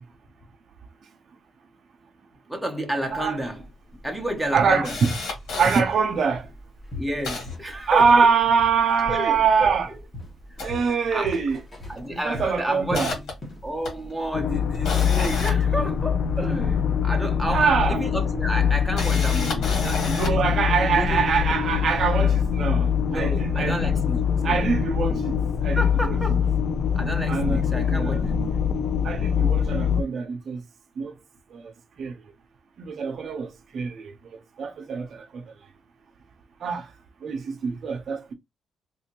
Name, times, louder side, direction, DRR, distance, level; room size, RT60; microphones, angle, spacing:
voice 1, 2.5-3.7 4.0-5.0 7.0-8.3 9.1-9.8 11.1-11.4 11.9-13.2 13.6-20.4 20.9-21.2 23.1-24.7 25.1-25.3 25.7-26.5 26.9-28.7, right 1 dB, 5° right, 0.9 m, -31 dB
Camera, 3.2-3.3 3.6-3.7 4.2-5.8 6.4-6.6 6.8-8.4 8.8-10.0 10.4-11.6 11.8-12.1 12.5-16.6 17.7-17.8 18.7-20.5 21.1-21.2, left 3 dB, 80° left, 1.8 m, -33 dB
voice 2, 4.5-5.1 5.6-6.5 7.9-9.9 10.6-11.6 12.1-13.1 17.5-18.0 20.1-23.9 24.4-25.8 26.0-26.1 27.3-28.2 29.0-30.6 31.0-31.1 31.5-31.7 32.0-32.1 32.8-35.4 36.6-36.9 37.2-38.3, right 6 dB, 55° right, 0.7 m, -24 dB
Walk footsteps, 6.3-6.5 6.9-8.3 8.6-9.9 10.1-13.7 14.0-14.2 14.7-14.8, left 2 dB, 25° left, 1.4 m, -38 dB
sound 1, 14.3-30.0, left 7 dB, 65° left, 0.5 m, -23 dB
3.6 x 2.7 x 2.9 m
cardioid pair, 130°, 0 cm